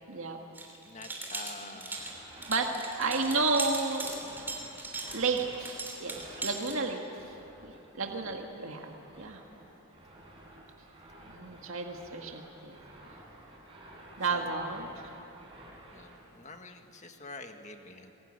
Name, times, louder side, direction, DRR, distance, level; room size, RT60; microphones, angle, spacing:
voice 1, 0.1-0.4 1.6-2.1 2.5-4.1 5.1-7.3 7.6-9.4 11.3-12.8 14.2-14.9, right 3 dB, 70° right, 2 dB, 1.9 m, -32 dB
sound 1, 0.5-6.7, right 2 dB, 10° right, 3.1 m, -39 dB
voice 2, 0.8-2.2 8.1-8.3 14.3-14.5 15.9-18.1, left 2 dB, 30° left, 5 dB, 1.7 m, -47 dB
sound 2, 1.8-16.2, right 1 dB, 25° right, 5.7 m, -52 dB
24.5 x 22.0 x 9.8 m, 3.0 s
head